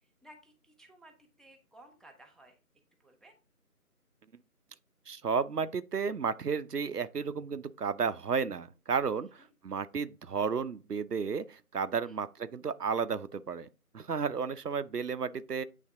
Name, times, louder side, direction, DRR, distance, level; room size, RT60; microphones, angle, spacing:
voice 1, 0.2-2.6 3.0-3.4 9.4-9.5 12.0-12.2, right 1 dB, ahead, 0.6 m, -57 dB
voice 2, 5.1-13.7 13.9-15.6, right 6 dB, 85° right, 0.7 m, -33 dB
8.6 x 3.3 x 3.7 m
figure-of-eight pair, 170°, 46 cm